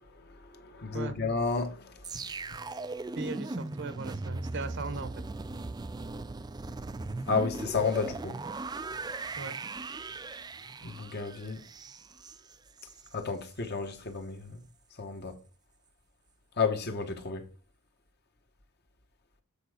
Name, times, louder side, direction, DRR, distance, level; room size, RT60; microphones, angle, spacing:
voice 1, 0.2-2.3 7.3-8.4 10.8-11.6 13.1-14.6 15.0-15.4 16.6-17.5, left 4 dB, 50° left, 1.2 m, -32 dB
sound 1, 2.0-13.1 13.5-13.7, right 3 dB, 20° right, 0.4 m, -39 dB
voice 2, 3.1-5.1 9.4-9.5, right 3 dB, 55° right, 0.9 m, -38 dB
8.3 x 4.7 x 4.9 m
head